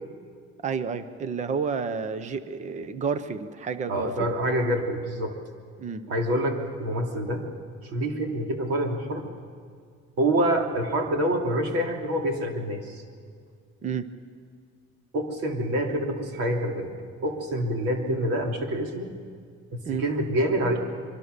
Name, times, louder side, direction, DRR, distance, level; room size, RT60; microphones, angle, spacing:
voice 1, 0.6-4.1 5.8-6.0 13.8-14.1 19.8-20.0, right 6 dB, 25° right, 12 dB, 0.8 m, -30 dB
voice 2, 3.9-5.3 6.1-7.4 7.8-9.2 10.2-13.0 15.1-16.9 17.2-19.1 19.7-20.8, right 1 dB, 50° right, 3 dB, 3.0 m, -26 dB
25.5 x 23.5 x 6.8 m, 2.1 s
cardioid pair, 180°, 29 cm